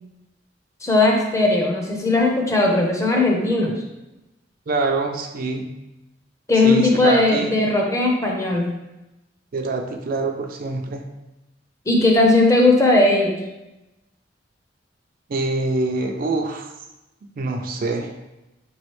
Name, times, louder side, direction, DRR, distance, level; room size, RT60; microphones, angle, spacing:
voice 1, 0.8-3.8 6.5-8.7 11.9-13.4, left 2 dB, 15° left, -1 dB, 0.6 m, -18 dB
voice 2, 4.7-5.7 6.6-7.5 9.5-11.0 15.3-16.7 17.4-18.1, right 3 dB, 50° right, 4 dB, 0.4 m, -25 dB
4.7 x 3.1 x 3.0 m, 0.98 s
head